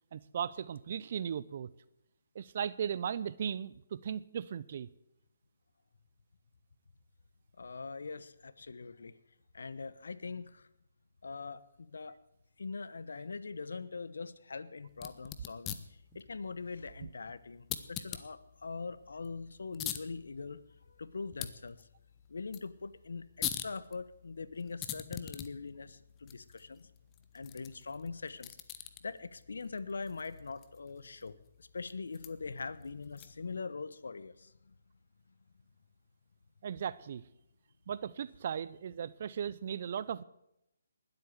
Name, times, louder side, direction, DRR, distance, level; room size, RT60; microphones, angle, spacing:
voice 1, 0.1-1.7 2.3-4.9 36.6-37.2 37.9-40.2, right 8 dB, 50° right, 18 dB, 0.6 m, -37 dB
voice 2, 7.6-9.2 9.5-10.7 11.2-12.2 12.6-15.8 16.1-20.6 20.9-21.9 22.3-26.9 27.3-28.5 29.0-34.7, left 4 dB, 75° left, 15 dB, 1.1 m, -42 dB
sound 1, 14.9-33.6, left 11 dB, 20° left, 1.0 m, -46 dB
20.0 x 8.3 x 8.1 m, 0.82 s
figure-of-eight pair, 150°, 0 cm